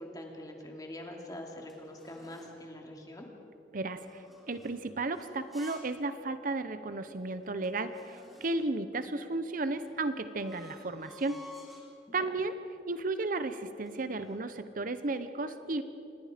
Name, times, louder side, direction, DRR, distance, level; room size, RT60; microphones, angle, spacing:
voice 1, 0.0-3.3 12.1-12.3, left 1 dB, 20° left, 1 dB, 2.6 m, -44 dB
sound 1, 1.0-2.6 3.9-6.0 6.4-6.5 7.1-7.2 7.4-8.8 9.7-12.0 12.6-12.9 13.2-14.5, left 1 dB, ahead, 4.1 m, -55 dB
voice 2, 3.7-11.4 12.1-12.5 12.9-15.8, right 2 dB, 50° right, 11 dB, 0.8 m, -34 dB
27.5 x 20.0 x 5.1 m, 2.7 s
head